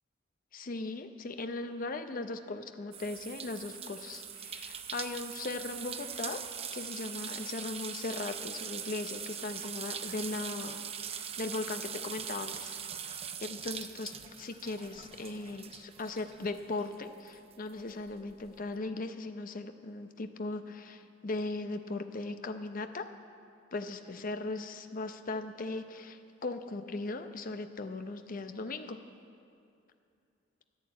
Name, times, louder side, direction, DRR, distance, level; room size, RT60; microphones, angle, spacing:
voice 1, 0.5-6.4 6.7-23.1 23.7-29.0, left 3 dB, 45° left, 8 dB, 0.7 m, -38 dB
sound 1, 2.9-17.0 17.3-18.5, right 8 dB, 30° right, 0.6 m, -42 dB
11.0 x 10.0 x 8.6 m, 2.5 s
head